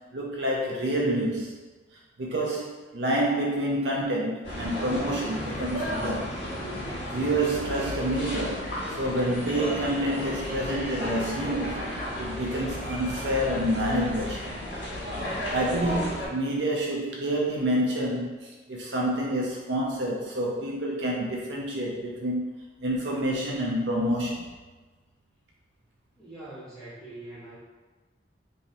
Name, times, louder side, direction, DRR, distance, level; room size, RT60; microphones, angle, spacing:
voice 1, 0.1-1.5 2.2-6.3 7.1-14.6 15.4-24.5, right 1 dB, 65° right, -3 dB, 0.6 m, -28 dB
sound 1, 4.4-16.3, equal, 80° left, 1.4 m, -33 dB
voice 2, 26.2-27.6, right 2 dB, 5° left, -14 dB, 0.9 m, -43 dB
3.1 x 2.7 x 4.0 m, 1.3 s
head